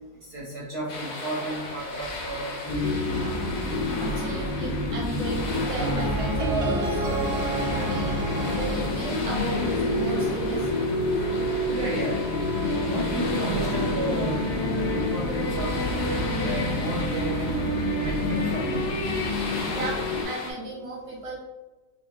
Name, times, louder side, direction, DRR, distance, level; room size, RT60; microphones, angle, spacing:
voice 1, 0.3-3.3 11.7-12.2 12.7-17.6 18.0-18.9, right 2 dB, 80° right, -4 dB, 0.5 m, -33 dB
sound 1, 0.9-20.5, left 2 dB, 65° left, 1.1 m, -37 dB
sound 2, 2.7-20.2, left 1 dB, 80° left, 1.3 m, -28 dB
voice 2, 4.0-8.2 8.5-11.5 19.7-21.4, right 1 dB, 35° right, -3 dB, 0.5 m, -34 dB
sound 3, 5.8-9.8, right 2 dB, 65° right, 1.2 m, -30 dB
3.8 x 2.6 x 2.8 m, 1.2 s
omnidirectional pair, 1.8 m